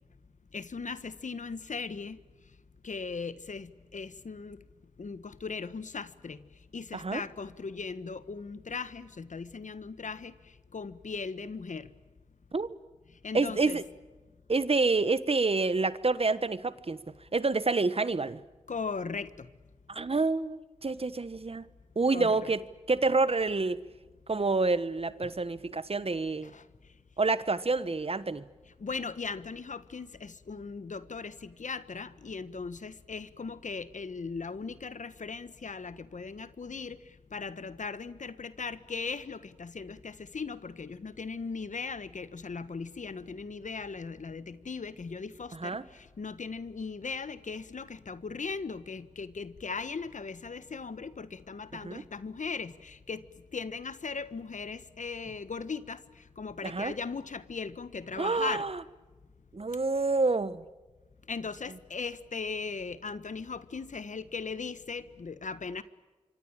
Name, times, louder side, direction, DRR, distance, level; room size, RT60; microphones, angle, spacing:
voice 1, 0.5-2.2 2.8-4.6 5.0-6.4 6.7-10.3 10.7-11.9 13.2-13.8 18.7-19.5 22.1-22.5 25.2-25.3 26.4-26.6 28.8-37.0 37.3-53.3 53.5-58.7 61.3-65.8, left 4 dB, 70° left, 1.3 m, -38 dB
voice 2, 13.3-13.8 14.5-17.0 17.3-18.4 19.9-21.6 21.9-23.8 24.3-26.5 27.2-28.4 45.5-45.8 51.8-52.0 56.6-56.9 58.2-58.8 59.5-60.6, right 3 dB, 50° right, 1.3 m, -28 dB
26.5 x 24.5 x 8.9 m
cardioid pair, 50°, 13 cm